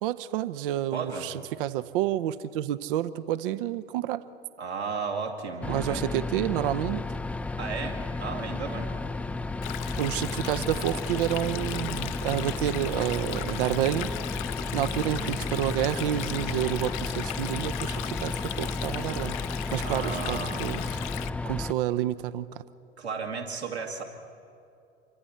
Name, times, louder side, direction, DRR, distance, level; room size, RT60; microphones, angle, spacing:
voice 1, 0.0-1.3 1.6-4.2 5.7-7.0 10.0-14.1 14.7-19.4 19.7-20.8 21.4-22.6, right 12 dB, 55° right, 14 dB, 0.8 m, -29 dB
voice 2, 0.9-1.3 4.6-6.0 7.6-8.9 15.0-15.4 19.8-20.7 23.0-24.0, right 5 dB, 80° right, 1 dB, 2.6 m, -34 dB
sound 1, 5.6-21.7, left 3 dB, 5° left, 0.4 m, -33 dB
Stream, 9.6-21.3, left 16 dB, 50° left, 0.7 m, -37 dB
27.5 x 24.0 x 4.3 m, 2.5 s
figure-of-eight pair, 75°, 32 cm